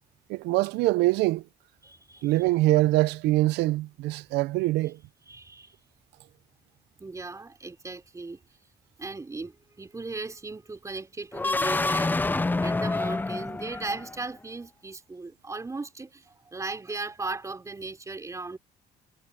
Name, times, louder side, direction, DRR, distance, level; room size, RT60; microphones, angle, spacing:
voice 1, 0.3-1.4 2.2-5.0, right 18 dB, 90° right, 0.7 m, -24 dB
voice 2, 1.8-2.4 5.3-5.7 7.0-8.4 9.0-12.3 12.6-18.6, right 3 dB, 20° right, 5.0 m, -37 dB
sound 1, 11.3-14.3, left 2 dB, 10° left, 0.5 m, -27 dB
cardioid pair, 110°, 17 cm